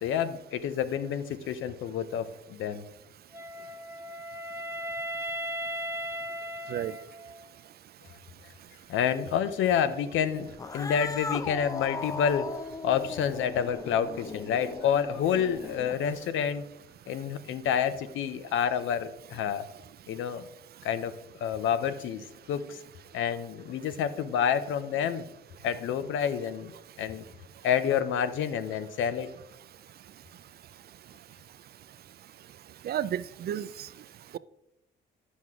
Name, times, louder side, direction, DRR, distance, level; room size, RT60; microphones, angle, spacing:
voice 1, 0.0-2.8 8.9-12.5 12.8-16.7 17.1-19.6 20.1-20.5 20.8-21.1 21.4-22.8 23.1-25.3 25.6-26.7 27.0-27.2 27.6-29.3, left 8 dB, 80° left, 0.7 m, -28 dB
Wind instrument woodwind instrument, 3.3-7.5, right 1 dB, 10° right, 0.8 m, -37 dB
Cat, 10.5-16.2, left 4 dB, 20° left, 0.4 m, -38 dB
voice 2, 32.8-33.9, right 10 dB, 50° right, 0.4 m, -32 dB
9.3 x 6.1 x 3.6 m
cardioid pair, 90°, 20 cm